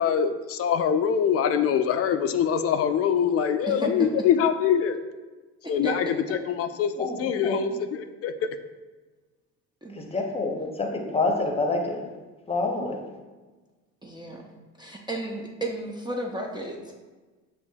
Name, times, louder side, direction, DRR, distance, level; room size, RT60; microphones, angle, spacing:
voice 1, 0.0-5.0 5.7-6.1 6.5-6.9 7.2-8.3, left 8 dB, 45° left, 8 dB, 0.4 m, -24 dB
voice 2, 3.7-4.1 5.6-5.9 9.8-10.0 14.0-16.9, right 2 dB, 15° right, -1 dB, 0.5 m, -33 dB
voice 3, 7.0-7.7 9.9-12.1 12.5-13.0, left 3 dB, 15° left, 2 dB, 0.8 m, -27 dB
7.0 x 2.6 x 2.3 m, 1.3 s
supercardioid pair, 80°, 35 cm